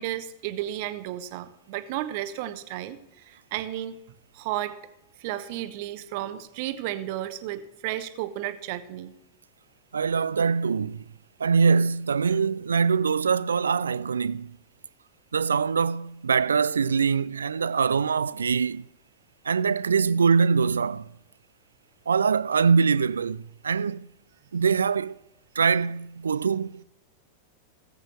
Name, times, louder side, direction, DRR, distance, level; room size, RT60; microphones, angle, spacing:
voice 1, 0.0-4.0 4.3-4.8 5.2-9.1, right 13 dB, 50° right, 0.9 m, -33 dB
voice 2, 9.9-11.0 11.4-14.5 15.3-18.8 19.5-21.1 22.1-24.1 24.5-25.1 25.6-26.8, right 5 dB, 70° right, 0.3 m, -23 dB
18.0 x 7.9 x 3.1 m
figure-of-eight pair, 90°, 0 cm